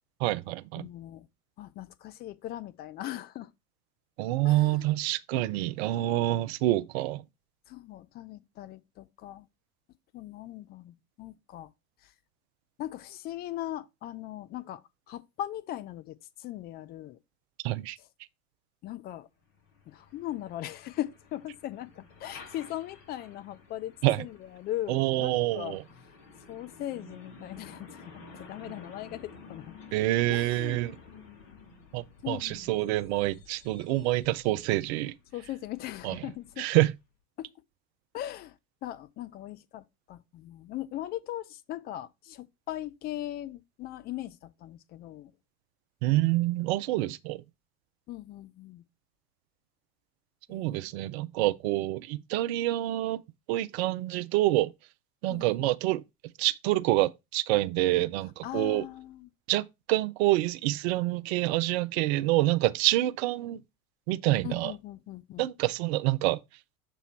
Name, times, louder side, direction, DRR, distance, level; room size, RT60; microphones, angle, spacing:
voice 1, 0.2-0.9 4.2-7.2 17.6-18.0 24.0-24.2 24.9-25.8 29.9-30.9 31.9-35.1 36.0-36.2 36.6-36.9 46.0-47.4 50.5-53.2 53.5-54.7 55.2-56.0 56.4-58.8 59.5-59.6 59.9-63.6 64.1-64.7 65.4-66.4, right 17 dB, 45° right, 0.5 m, -27 dB
voice 2, 0.7-1.3 1.6-3.5 4.4-4.9 7.7-9.5 10.1-11.7 12.0-12.1 12.8-14.8 15.1-17.2 18.0-18.1 18.8-19.3 19.9-25.8 26.5-29.7 30.3-30.9 32.2-32.7 35.3-36.7 37.4-37.5 38.1-38.6 38.8-45.3 48.1-48.8 50.5-50.9 55.3-55.7 58.4-59.3 64.4-65.5, left 13 dB, 25° left, 0.4 m, -39 dB
Truck, 19.4-37.1, left 4 dB, 50° left, 2.1 m, -52 dB
6.8 x 3.0 x 5.4 m
figure-of-eight pair, 85°, 46 cm